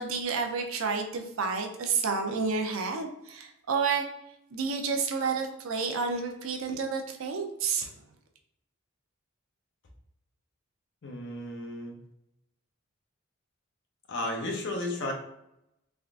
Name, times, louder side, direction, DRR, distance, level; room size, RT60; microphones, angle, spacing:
voice 1, 0.0-4.0 4.5-7.9, right 5 dB, 75° right, 4 dB, 0.5 m, -30 dB
voice 2, 11.0-12.0 14.1-15.1, left 1 dB, 60° left, 2 dB, 0.6 m, -33 dB
3.4 x 2.4 x 2.3 m, 0.83 s
head